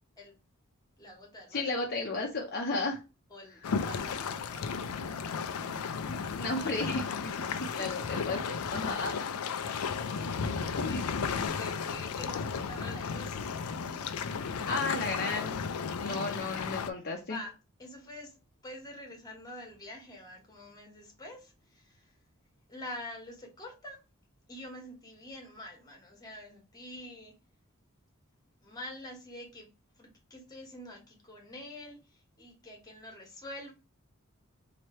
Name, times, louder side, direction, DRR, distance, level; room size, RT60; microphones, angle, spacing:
voice 1, 1.0-1.8 2.7-2.9 3.3-5.5 6.0-6.7 7.7-8.1 8.8-9.1 9.6-13.4 17.3-17.5 17.8-18.4 18.6-22.1 22.7-24.0 24.5-27.4 28.6-29.7 30.0-33.7, left 1 dB, 20° left, 1.3 m, -47 dB
voice 2, 1.5-3.0 6.1-7.3 7.6-9.1 10.8-11.0 14.7-15.5 16.0-17.4, left 3 dB, 50° left, 0.7 m, -33 dB
sound 1, 3.6-16.9, left 6 dB, 85° left, 0.4 m, -34 dB
3.1 x 2.9 x 4.2 m
head